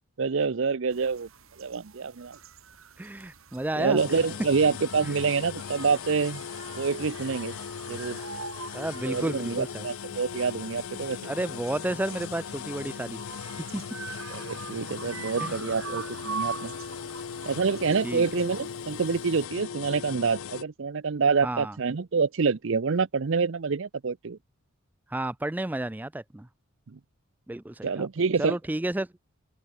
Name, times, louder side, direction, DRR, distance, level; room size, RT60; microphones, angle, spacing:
voice 1, 0.2-1.3 1.6-2.4 3.8-6.4 6.8-7.5 7.9-8.2 9.1-11.3 14.3-16.7 17.5-24.4 26.9-27.0 27.8-28.6, right 5 dB, 60° right, 0.6 m, -27 dB
sound 1, 0.9-19.5, right 5 dB, 80° right, 2.9 m, -43 dB
voice 2, 3.0-4.0 8.7-9.9 11.2-13.2 13.7-13.8 15.4-15.6 18.0-18.3 21.4-21.8 25.1-26.5 27.5-28.1 28.4-29.1, right 1 dB, 10° right, 0.3 m, -31 dB
sound 2, 4.0-20.6, left 7 dB, 80° left, 0.5 m, -38 dB
open air
head